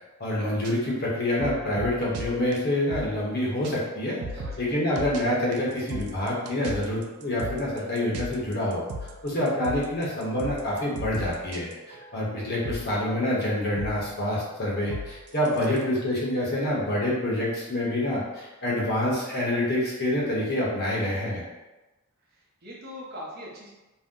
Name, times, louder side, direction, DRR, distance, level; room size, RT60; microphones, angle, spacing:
voice 1, 0.2-4.2 4.6-21.4, left 1 dB, 45° left, -5 dB, 0.9 m, -27 dB
sound 1, 0.6-3.4 3.6-3.7 4.0-12.4 12.6-17.4, right 1 dB, 90° right, 0.4 m, -39 dB
voice 2, 4.4-4.8 15.7-15.8 22.3-23.7, equal, 45° right, -4 dB, 0.7 m, -42 dB
2.7 x 2.1 x 3.6 m, 1.1 s
head